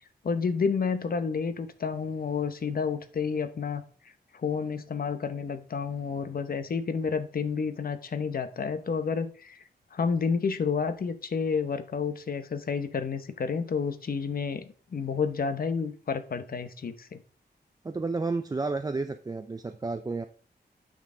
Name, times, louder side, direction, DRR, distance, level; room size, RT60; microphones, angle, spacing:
voice 1, 0.2-3.8 4.3-9.6 9.9-17.2, left 5 dB, 55° left, 0.9 m, -30 dB
voice 2, 17.8-20.3, right 3 dB, 20° right, 0.4 m, -31 dB
9.3 x 6.3 x 3.8 m
wide cardioid pair, 145°, 18 cm